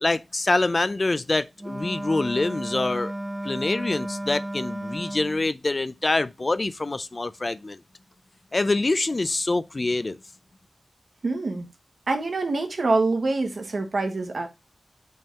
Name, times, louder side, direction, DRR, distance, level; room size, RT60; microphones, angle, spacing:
voice 1, 0.0-3.1 3.4-7.8 8.5-10.2, left 2 dB, 40° left, 0.4 m, -25 dB
Wind instrument woodwind instrument, 1.6-5.5, right 1 dB, 20° right, 0.6 m, -33 dB
voice 2, 11.2-11.7 12.1-14.5, right 3 dB, 75° right, 1.4 m, -25 dB
5.4 x 3.6 x 5.4 m
wide cardioid pair, 85°, 0 cm